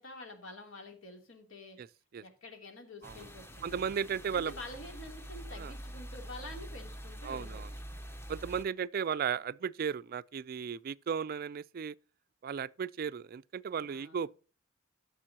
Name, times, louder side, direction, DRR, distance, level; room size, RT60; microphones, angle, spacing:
voice 1, 0.0-1.8 2.2-3.8 4.3-7.6 13.8-14.3, left 2 dB, 70° left, 2.9 m, -48 dB
sound 1, 3.0-8.6, equal, 10° left, 0.8 m, -45 dB
voice 2, 3.6-4.5 5.5-5.7 7.2-7.7 8.3-12.0 12.4-14.4, right 7 dB, 45° right, 0.3 m, -35 dB
13.5 x 6.8 x 2.8 m
head